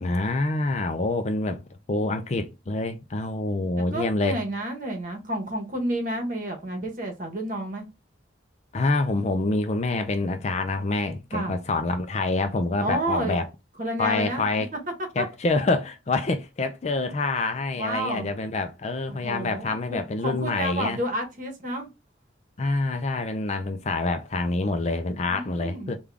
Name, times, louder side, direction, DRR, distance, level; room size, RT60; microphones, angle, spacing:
voice 1, 0.0-1.6 1.9-4.4 8.7-13.5 14.0-14.7 15.2-21.0 22.6-26.0, left 2 dB, 35° left, 0.4 m, -26 dB
voice 2, 3.9-7.8 11.3-11.5 12.8-13.4 13.8-14.4 15.2-15.3 17.8-18.3 19.2-21.9 25.3-25.9, right 1 dB, 40° right, 1.0 m, -30 dB
3.6 x 2.3 x 3.3 m
head